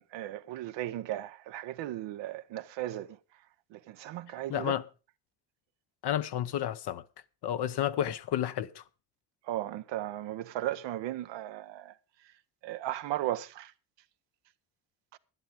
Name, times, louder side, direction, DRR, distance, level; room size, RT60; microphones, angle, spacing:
voice 1, 0.0-3.2 3.7-4.8 9.5-11.9 12.6-13.7 15.1-15.2, right 13 dB, 70° right, 0.9 m, -36 dB
voice 2, 4.5-4.9 6.0-7.0 7.4-8.8, left 11 dB, 60° left, 0.9 m, -31 dB
11.5 x 11.0 x 5.0 m
hypercardioid pair, 50°, 45 cm